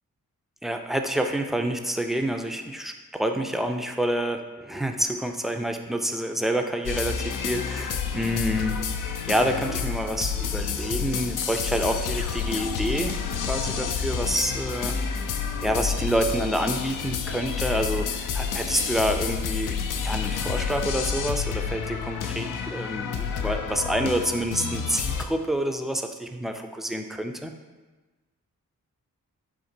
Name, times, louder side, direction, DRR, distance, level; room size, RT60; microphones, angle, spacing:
voice 1, 0.6-8.8 9.3-13.2 13.5-15.3 15.6-19.8 20.0-27.5, equal, ahead, 5 dB, 0.4 m, -28 dB
sound 1, 6.8-25.2, left 6 dB, 65° left, 0.5 m, -29 dB
3.8 x 2.5 x 4.4 m, 1.2 s
cardioid pair, 50°, 35 cm